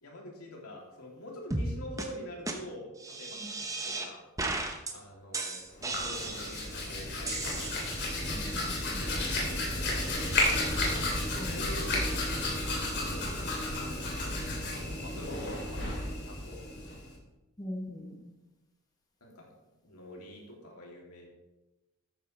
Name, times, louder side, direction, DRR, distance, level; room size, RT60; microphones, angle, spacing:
voice 1, 0.0-4.2 4.9-7.7 8.7-12.3 13.1-17.0 19.2-19.5 19.8-21.3, equal, 75° left, -2 dB, 3.0 m, -46 dB
sound 1, 1.5-1.7 2.0-2.1 2.5-2.6 3.0-4.1 4.4-4.9 5.3-6.7 7.3-8.2, right 2 dB, 15° right, 0.9 m, -35 dB
Hands, 5.7-17.1, left 1 dB, 50° left, 3.0 m, -32 dB
voice 2, 8.3-9.3 11.3-11.6 17.6-18.3, left 1 dB, 15° left, 0 dB, 1.1 m, -42 dB
13.0 x 9.3 x 3.3 m, 1.0 s
head